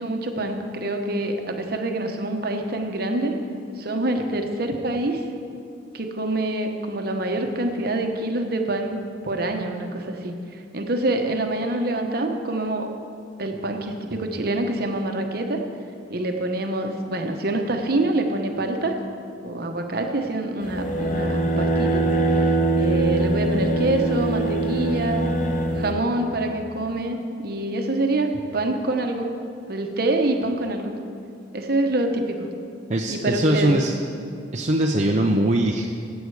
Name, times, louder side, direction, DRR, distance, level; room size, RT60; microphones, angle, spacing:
voice 1, 0.0-3.3 3.8-5.2 5.9-9.0 9.2-12.9 13.4-15.6 16.1-19.0 19.4-22.0 22.8-25.3 25.7-29.3 29.7-30.9 31.5-32.5 33.1-33.8, right 2 dB, 55° right, 4 dB, 1.0 m, -26 dB
sound 1, 20.6-25.9, right 2 dB, 40° left, 1.1 m, -22 dB
voice 2, 32.9-33.9 34.5-35.9, right 1 dB, 35° right, 0 dB, 0.6 m, -21 dB
15.0 x 8.1 x 4.8 m, 2.4 s
head